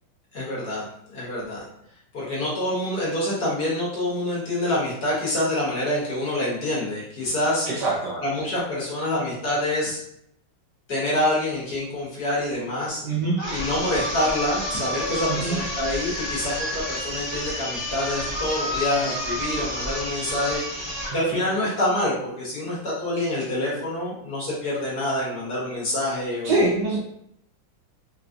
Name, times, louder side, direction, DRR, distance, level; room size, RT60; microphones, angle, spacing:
voice 1, 0.3-1.7 2.1-7.7 8.2-10.0 10.9-13.0 13.5-20.8 21.1-26.5, left 1 dB, 55° left, -6 dB, 1.4 m, -26 dB
voice 2, 7.7-8.2 13.0-13.4 15.3-15.6 21.1-21.4 26.4-27.0, right 2 dB, 65° right, -3 dB, 1.2 m, -24 dB
sound 1, 13.4-21.2, equal, 35° right, 0.8 m, -30 dB
4.3 x 2.3 x 2.5 m, 0.74 s
omnidirectional pair, 2.3 m